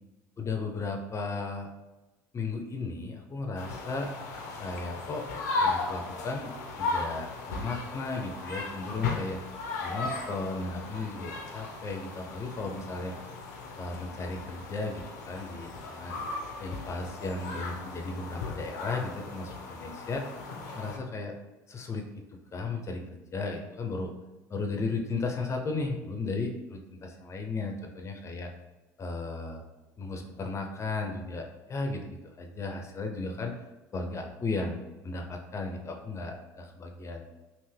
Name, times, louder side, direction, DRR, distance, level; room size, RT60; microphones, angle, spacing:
voice 1, 0.4-1.7 2.3-4.1 4.6-5.2 5.6-6.5 6.8-9.4 9.8-13.1 13.8-16.1 16.6-20.2 20.8-21.3 21.7-22.1 22.5-24.1 24.5-28.5 29.0-29.6 30.0-33.6 33.9-37.2, left 3 dB, 30° left, 3 dB, 0.6 m, -35 dB
sound 1, 3.6-21.0, left 3 dB, 85° left, 0.6 m, -36 dB
3.5 x 2.5 x 3.3 m, 1.1 s
hypercardioid pair, 75°, 9 cm